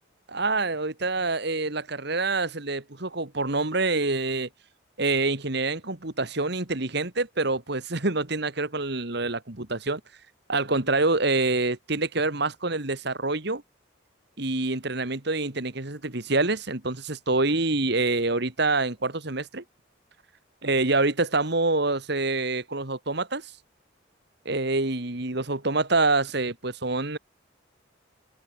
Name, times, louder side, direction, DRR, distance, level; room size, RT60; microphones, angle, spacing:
voice 1, 0.3-4.5 5.0-10.0 10.5-13.6 14.4-19.6 20.6-23.5 24.5-27.2, right 3 dB, 55° right, 2.0 m, -26 dB
open air
head